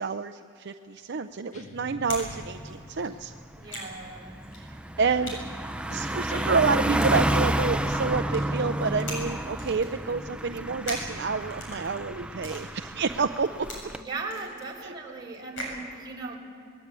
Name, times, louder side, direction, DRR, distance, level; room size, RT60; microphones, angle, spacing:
voice 1, 0.0-3.3 4.6-4.7 5.0-5.4 5.9-13.5 14.8-14.9, right 4 dB, 55° right, 7 dB, 0.6 m, -28 dB
sound 1, 0.9-2.3 2.6-15.8, left 1 dB, 65° left, 7.1 m, -41 dB
sound 2, 1.5-3.6, left 2 dB, 35° left, 1.8 m, -46 dB
Car passing by, 2.4-2.7 3.1-14.0, right 1 dB, 5° right, 0.6 m, -30 dB
voice 2, 3.5-4.4 13.9-16.4, right 3 dB, 20° right, -1 dB, 4.3 m, -38 dB
23.0 x 21.0 x 8.3 m, 2.8 s
head